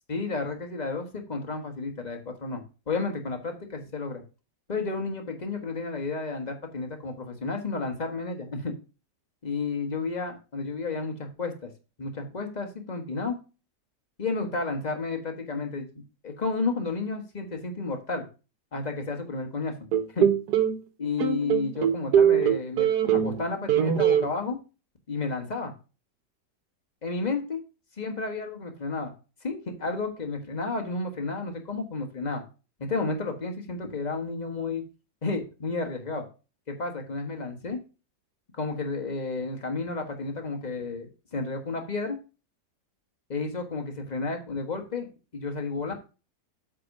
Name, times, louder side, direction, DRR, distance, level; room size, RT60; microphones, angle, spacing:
voice 1, 0.1-2.6 2.9-4.2 4.7-8.7 9.4-11.7 12.0-13.3 14.2-18.3 18.7-19.8 20.1-20.3 21.0-24.6 25.1-25.7 27.0-27.6 28.0-29.1 29.4-32.4 32.8-34.8 35.2-36.3 36.7-37.8 38.5-42.2 43.3-45.9, left 3 dB, 25° left, 4 dB, 1.3 m, -32 dB
sound 1, 19.9-20.8 21.2-23.4 23.7-24.3, right 9 dB, 70° right, 1.4 m, -22 dB
8.0 x 3.7 x 6.5 m, 0.32 s
omnidirectional pair, 1.9 m